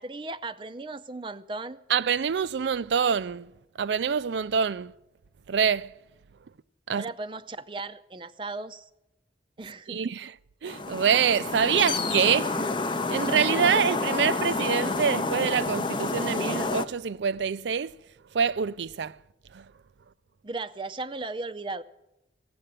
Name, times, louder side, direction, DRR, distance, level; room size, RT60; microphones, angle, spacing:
voice 1, 0.0-1.8 6.9-8.9 9.6-10.0 20.4-21.8, right 3 dB, 30° right, 0.5 m, -36 dB
voice 2, 1.9-3.5 3.8-4.9 5.5-5.9 6.9-7.1 9.9-10.3 10.6-12.7 13.1-18.0 18.3-19.2 19.5-19.6, right 7 dB, 80° right, 0.4 m, -25 dB
sound 1, 10.7-16.9, left 3 dB, 25° left, 0.5 m, -29 dB
16.0 x 7.7 x 9.1 m
head